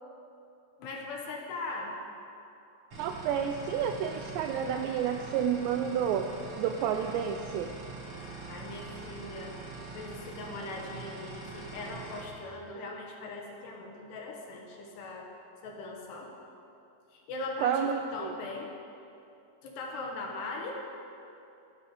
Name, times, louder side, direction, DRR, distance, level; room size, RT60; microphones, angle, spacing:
voice 1, 0.8-1.9 8.5-9.6 9.9-15.3 15.6-16.3 17.1-18.7 19.6-20.8, left 2 dB, 65° left, 0 dB, 3.2 m, -40 dB
sound 1, 2.9-12.3, right 3 dB, 50° right, 1.6 m, -43 dB
voice 2, 3.0-6.3 6.6-7.7 17.6-18.3, right 8 dB, 85° right, 5 dB, 2.5 m, -30 dB
17.0 x 12.0 x 5.0 m, 2.7 s
omnidirectional pair, 5.5 m